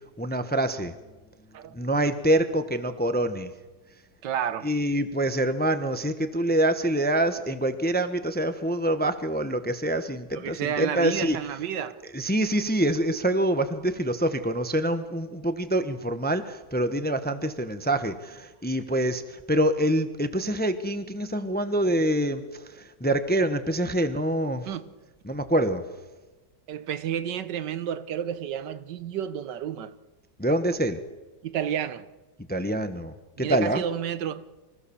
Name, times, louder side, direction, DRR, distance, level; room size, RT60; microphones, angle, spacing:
voice 1, 0.2-0.9 1.7-3.5 4.6-11.4 12.1-24.7 25.2-25.8 30.4-31.0 32.5-33.8, right 1 dB, 10° left, 0.7 m, -26 dB
voice 2, 4.2-4.7 10.3-12.0 24.6-24.9 26.7-29.9 31.4-32.1 33.4-34.4, right 9 dB, 80° right, 1.6 m, -31 dB
25.5 x 16.0 x 7.1 m
omnidirectional pair, 1.9 m